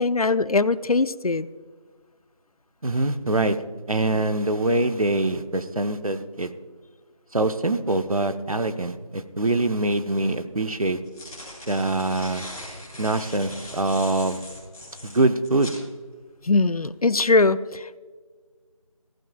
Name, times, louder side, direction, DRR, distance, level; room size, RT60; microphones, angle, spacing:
voice 1, 0.0-1.5 16.5-18.0, left 3 dB, 80° left, 16 dB, 0.6 m, -21 dB
voice 2, 2.8-3.6 3.9-6.5 7.3-11.0 11.7-12.5 13.0-14.4 15.0-15.7, right 2 dB, 70° right, 9 dB, 1.0 m, -24 dB
sound 1, 10.8-15.8, left 1 dB, 10° left, 3.0 m, -40 dB
15.0 x 15.0 x 2.3 m, 1.5 s
figure-of-eight pair, 175°, 19 cm